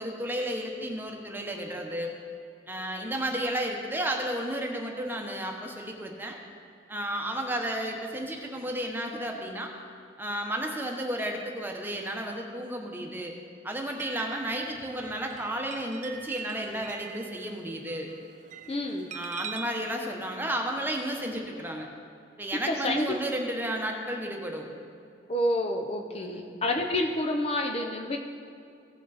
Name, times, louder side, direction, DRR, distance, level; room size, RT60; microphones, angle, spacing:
voice 1, 0.0-2.1 2.7-6.4 6.9-9.7 10.2-13.3 13.6-18.1 19.1-21.9 22.4-24.7 26.1-26.5, right 1 dB, 10° right, 1 dB, 1.0 m, -32 dB
sound 1, 13.7-19.8, right 7 dB, 45° right, 0.4 m, -43 dB
voice 2, 18.7-19.1 22.7-23.2 25.3-28.2, left 1 dB, 35° left, 3 dB, 0.7 m, -28 dB
16.5 x 6.1 x 4.1 m, 2.4 s
head